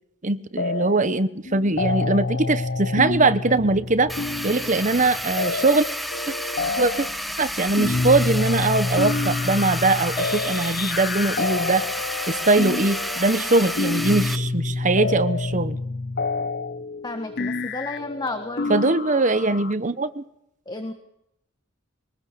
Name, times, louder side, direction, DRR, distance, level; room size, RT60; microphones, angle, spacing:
voice 1, 0.2-4.1 4.4-5.9 6.3-6.4 6.8-7.1 7.4-11.8 12.3-15.8 18.7-20.2, right 2 dB, 40° right, 13 dB, 1.1 m, -21 dB
sound 1, 0.6-1.2 1.5-19.7, left 3 dB, 55° left, 0.9 m, -28 dB
sound 2, 4.1-14.4, equal, ahead, 1.1 m, -31 dB
voice 2, 17.0-18.8 20.6-20.9, left 2 dB, 20° left, 7 dB, 1.5 m, -32 dB
22.5 x 19.5 x 6.9 m, 0.79 s
head